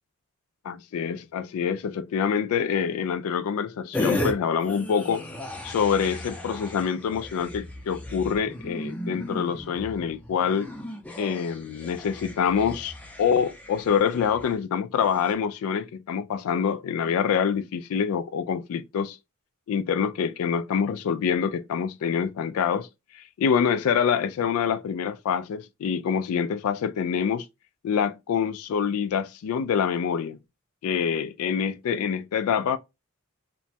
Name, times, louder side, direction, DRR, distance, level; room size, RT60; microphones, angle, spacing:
voice 1, 0.6-5.3 5.6-10.7 11.2-19.2 19.7-22.9 23.1-27.5 27.8-30.4 30.8-32.8, left 7 dB, 75° left, 0.3 m, -26 dB
sound 1, 3.9-4.3 4.6-14.5 15.0-15.3, left 1 dB, 5° left, 0.5 m, -35 dB
3.0 x 2.2 x 2.7 m
head